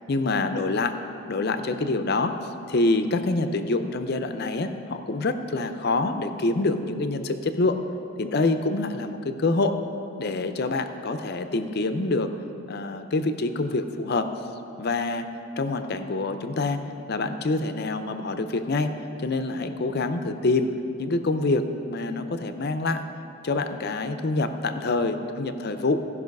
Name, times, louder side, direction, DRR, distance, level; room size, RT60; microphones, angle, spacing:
voice 1, 0.1-0.9 1.3-2.3 2.7-7.8 8.2-9.8 10.2-12.3 12.7-14.3 14.8-15.3 15.6-16.8 17.1-23.0 23.4-26.0, left 2 dB, 45° left, 8 dB, 0.5 m, -26 dB
15.0 x 5.5 x 5.3 m, 2.8 s
head